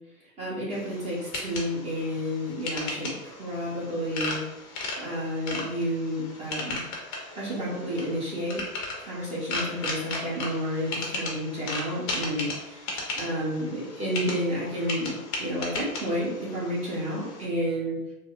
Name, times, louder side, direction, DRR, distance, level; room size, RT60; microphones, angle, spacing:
voice 1, 0.4-4.4 5.0-6.8 7.3-8.7 9.0-18.0, equal, 15° right, -7 dB, 1.1 m, -31 dB
sound 1, 0.7-17.5, left 2 dB, 30° left, 0.7 m, -36 dB
3.3 x 2.1 x 2.4 m, 0.96 s
hypercardioid pair, 120°, 42 cm